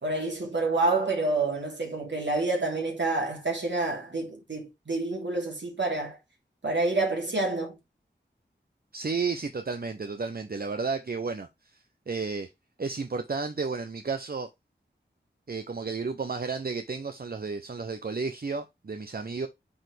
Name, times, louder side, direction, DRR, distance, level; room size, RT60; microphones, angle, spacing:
voice 1, 0.0-6.2 6.6-7.8, right 2 dB, 70° right, 2.9 m, -28 dB
voice 2, 8.9-11.5 11.7-12.5 12.8-14.5 15.5-19.5, right 4 dB, 50° right, 0.7 m, -32 dB
8.7 x 4.2 x 3.3 m
wide cardioid pair, 50°, 20 cm